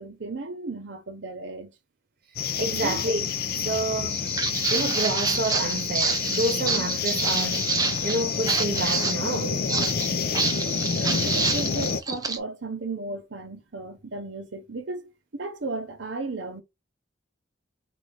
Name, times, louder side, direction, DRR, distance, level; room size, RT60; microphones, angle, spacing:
voice 1, 0.0-1.7 2.7-3.0 11.0-16.6, right 3 dB, 75° right, 1.0 m, -35 dB
sound 1, 2.4-12.0, left 6 dB, 55° left, 0.6 m, -28 dB
voice 2, 2.6-3.2 3.6-4.2 4.7-7.7 8.0-9.7, right 2 dB, 55° right, 0.9 m, -29 dB
Walk footsteps, 4.1-12.4, right 4 dB, 20° right, 0.6 m, -28 dB
4.5 x 2.5 x 3.8 m
head